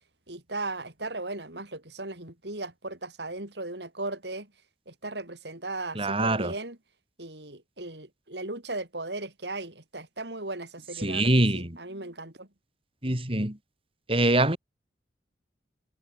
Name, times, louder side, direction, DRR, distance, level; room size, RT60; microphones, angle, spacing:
voice 1, 0.3-4.5 4.9-6.8 7.2-12.5, right 2 dB, 70° right, 6.1 m, -37 dB
voice 2, 6.0-6.5 11.0-11.7 13.0-13.5 14.1-14.6, right 1 dB, 30° right, 4.2 m, -24 dB
head